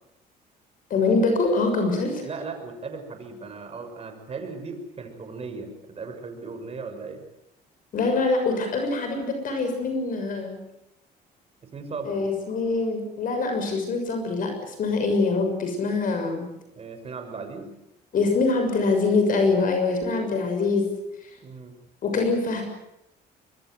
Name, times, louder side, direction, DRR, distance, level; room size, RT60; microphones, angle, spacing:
voice 1, 0.9-2.2 7.9-10.6 12.0-16.5 18.1-20.9 22.0-22.6, left 3 dB, 55° left, 5 dB, 6.7 m, -24 dB
voice 2, 2.2-7.2 11.6-12.2 16.7-17.7 21.4-21.7, right 4 dB, 35° right, 6 dB, 6.4 m, -37 dB
25.0 x 22.5 x 8.0 m, 0.84 s
cardioid pair, 110°, 17 cm